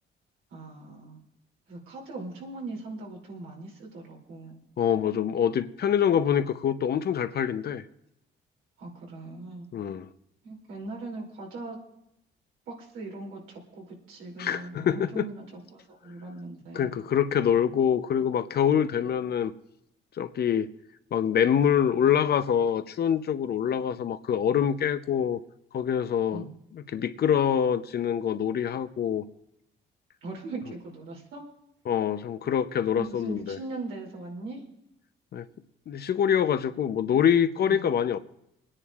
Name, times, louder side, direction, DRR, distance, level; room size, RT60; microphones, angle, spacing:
voice 1, 0.5-1.2 1.7-4.6 8.8-9.7 10.4-11.8 12.7-16.9 26.3-26.5 30.2-31.4 32.9-34.6 37.7-37.9, right 2 dB, 85° right, -1 dB, 2.8 m, -40 dB
voice 2, 4.8-7.8 9.7-10.1 14.4-15.3 16.7-19.5 20.2-20.7 21.1-25.4 25.7-26.4 26.7-29.2 31.9-33.6 35.3-35.4 35.9-38.2, left 8 dB, 55° left, 11 dB, 0.7 m, -25 dB
27.5 x 9.9 x 2.4 m, 0.82 s
cardioid pair, 90°, 20 cm